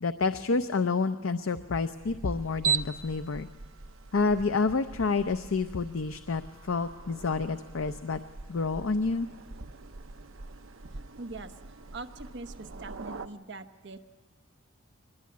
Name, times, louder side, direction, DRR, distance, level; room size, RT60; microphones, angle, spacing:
voice 1, 0.0-3.5 4.1-8.2 8.5-9.3, left 4 dB, 85° left, 9 dB, 0.6 m, -29 dB
sound 1, 1.7-13.3, right 6 dB, 80° right, 0.8 m, -39 dB
voice 2, 10.9-14.0, right 3 dB, 60° right, 8 dB, 1.1 m, -43 dB
23.0 x 21.0 x 8.6 m, 1.3 s
head